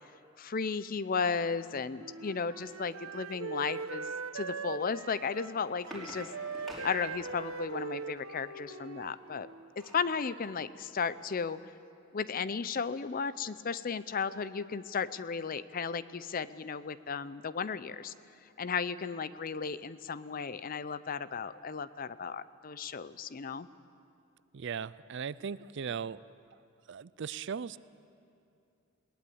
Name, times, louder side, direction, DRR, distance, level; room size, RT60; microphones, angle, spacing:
voice 1, 0.4-4.1 4.3-9.5 9.8-11.7 12.1-18.1 18.6-23.7, left 5 dB, 40° left, 16 dB, 0.5 m, -35 dB
Wind instrument woodwind instrument, 2.0-9.7, right 5 dB, 80° right, 1.0 m, -41 dB
sound 1, 5.5-7.7 9.2-10.1 10.6-10.7 11.0-11.2, right 1 dB, ahead, 4.4 m, -48 dB
voice 2, 24.5-26.2 26.5-26.6 26.9-27.8, right 6 dB, 55° right, 18 dB, 0.4 m, -38 dB
20.5 x 18.5 x 8.6 m, 2.5 s
head